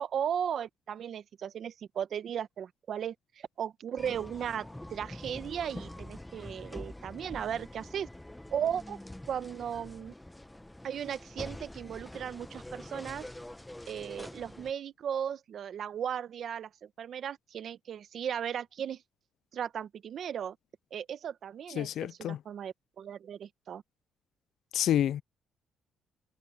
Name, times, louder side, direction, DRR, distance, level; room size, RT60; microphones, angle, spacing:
voice 1, 0.0-8.1 8.5-9.0 9.3-10.1 10.8-13.3 13.9-19.0 19.5-20.6 20.9-23.8, right 8 dB, 55° right, 1.2 m, -36 dB
sound 1, 4.0-14.7, left 1 dB, 5° left, 1.1 m, -45 dB
voice 2, 21.8-22.4 24.7-25.2, left 11 dB, 70° left, 0.4 m, -28 dB
cardioid pair, 105°, 0 cm